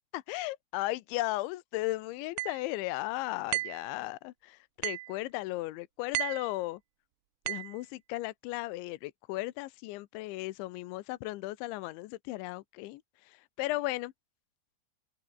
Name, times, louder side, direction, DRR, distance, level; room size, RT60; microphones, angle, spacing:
voice 1, 0.0-6.8 7.5-14.1, left 18 dB, 80° left, 2.9 m, -36 dB
sound 1, 2.4-2.6 3.5-3.8 4.8-5.2 6.1-6.5 7.5-7.8, right 20 dB, 80° right, 3.2 m, -34 dB
open air
omnidirectional pair, 6.0 m